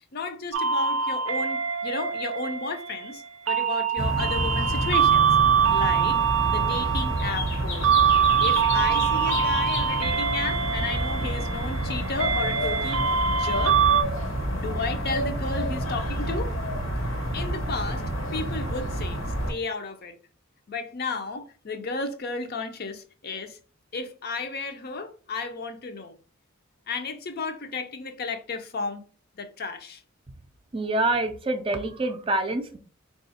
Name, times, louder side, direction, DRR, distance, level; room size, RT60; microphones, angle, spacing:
voice 1, 0.1-5.3 5.7-6.2 6.5-7.9 8.4-13.8 14.5-16.5 17.3-18.0 18.3-19.2 19.5-20.1 20.7-23.6 23.9-26.2 26.9-29.0 29.4-30.0, left 4 dB, 50° left, 0.6 m, -33 dB
sound 1, 0.5-14.0, right 7 dB, 80° right, 0.5 m, -24 dB
sound 2, 4.0-19.5, equal, 70° left, 1.0 m, -29 dB
voice 2, 30.7-32.8, right 2 dB, 25° right, 0.4 m, -26 dB
3.4 x 2.4 x 4.1 m
head